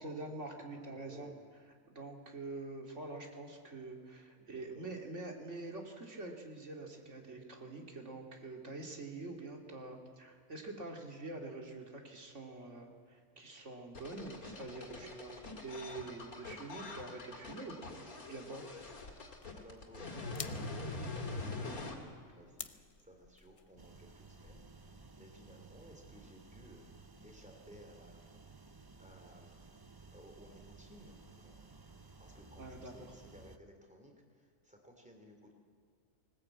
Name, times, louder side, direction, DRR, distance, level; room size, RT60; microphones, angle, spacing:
voice 1, 0.0-1.3 1.9-15.3 15.6-18.6 32.6-33.1, right 2 dB, 50° right, 2 dB, 2.8 m, -46 dB
voice 2, 0.6-1.3 4.4-4.9 14.9-15.6 19.5-27.0 27.2-28.3 29.0-29.8 30.1-31.6 31.9-35.5, right 1 dB, 5° right, 2 dB, 3.3 m, -58 dB
sound 1, 13.9-21.9, left 2 dB, 70° left, 2.9 m, -44 dB
sound 2, 18.8-25.1, left 5 dB, 40° left, 0.5 m, -53 dB
sound 3, 23.8-33.6, right 3 dB, 20° right, 0.7 m, -56 dB
19.5 x 19.5 x 8.6 m, 2.1 s
omnidirectional pair, 1.6 m